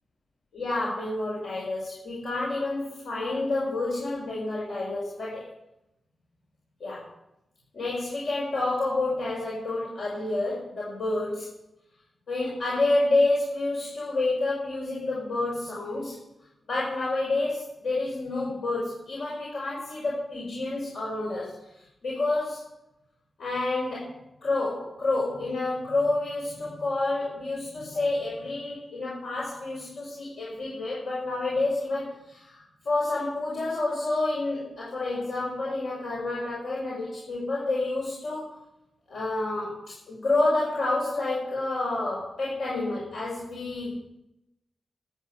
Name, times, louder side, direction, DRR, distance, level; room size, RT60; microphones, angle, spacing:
voice 1, 0.5-5.4 6.8-7.1 7.7-11.5 12.3-16.2 16.7-21.5 22.0-22.7 23.4-24.2 24.4-38.6 39.1-44.0, left 2 dB, 80° left, -6 dB, 5.6 m, -29 dB
13.0 x 8.7 x 8.3 m, 0.88 s
cardioid pair, 80°, 0 cm